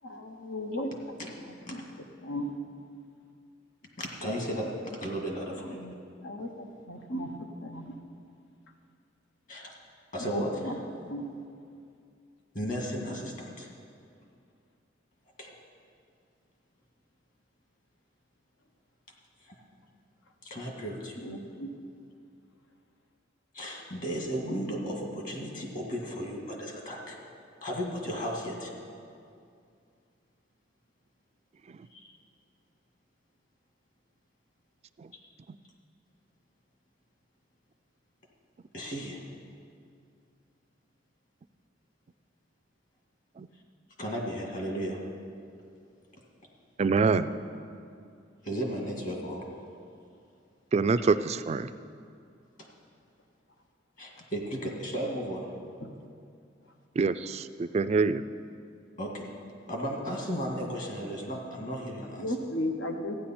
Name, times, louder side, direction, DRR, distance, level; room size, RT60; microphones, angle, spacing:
voice 1, 0.0-0.9 1.4-1.8 2.2-2.5 4.5-4.7 5.6-6.0 6.2-7.9 10.2-10.8 11.1-11.3 13.1-13.4 21.2-21.7 47.0-47.5 55.8-56.1 62.2-63.2, left 1 dB, 90° left, 1.1 m, -36 dB
voice 2, 4.0-4.7 5.0-5.8 9.5-9.7 10.1-10.8 12.5-13.7 15.4-15.6 19.4-19.5 20.4-21.3 23.5-27.2 27.6-28.7 31.9-32.1 38.7-39.2 44.0-45.0 48.4-49.5 52.6-52.7 54.0-55.5 59.0-62.3, equal, 45° left, 1.9 m, -35 dB
voice 3, 46.8-47.3 50.7-51.7 57.0-58.2, right 4 dB, 35° right, 0.3 m, -25 dB
14.5 x 9.8 x 4.3 m
head